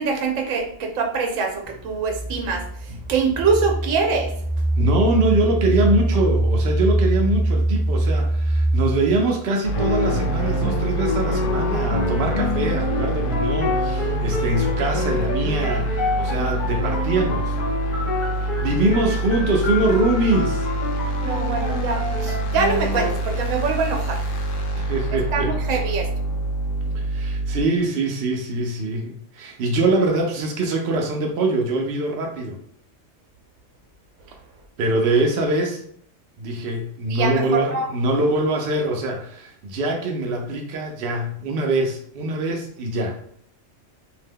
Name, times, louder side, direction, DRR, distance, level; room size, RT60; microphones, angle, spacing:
voice 1, 0.0-2.7 3.1-4.3 21.2-24.2 25.1-26.1 37.1-37.9, right 4 dB, 80° right, 2 dB, 1.0 m, -24 dB
sound 1, 1.7-9.5, right 1 dB, 10° left, 0.9 m, -23 dB
voice 2, 4.8-17.6 18.4-20.7 24.7-25.5 26.9-32.6 34.8-35.8 36.4-43.2, right 2 dB, 60° right, 1 dB, 0.6 m, -23 dB
sound 2, 9.6-27.6, right 1 dB, 75° left, 1.0 m, -26 dB
sound 3, 9.7-23.1, left 2 dB, 45° left, 0.7 m, -27 dB
2.7 x 2.1 x 3.4 m, 0.65 s
omnidirectional pair, 1.4 m